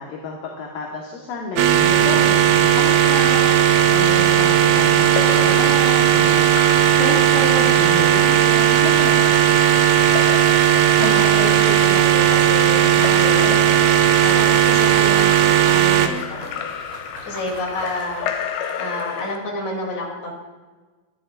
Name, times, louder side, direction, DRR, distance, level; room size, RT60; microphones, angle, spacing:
voice 1, 0.0-3.5 3.9-6.5 7.0-9.3, left 4 dB, 60° left, -1 dB, 2.6 m, -30 dB
sound 1, 1.6-16.1, right 10 dB, 80° right, 2.1 m, -16 dB
Splash splatter / Drip / Trickle dribble, 5.0-19.4, left 8 dB, 75° left, 3.1 m, -33 dB
voice 2, 11.0-13.6 14.2-16.6 17.2-18.4 18.8-20.3, left 1 dB, 40° left, -1 dB, 3.8 m, -29 dB
sound 2, 13.5-18.4, right 3 dB, 55° right, 4.3 m, -39 dB
23.5 x 13.0 x 2.6 m, 1.3 s
omnidirectional pair, 5.3 m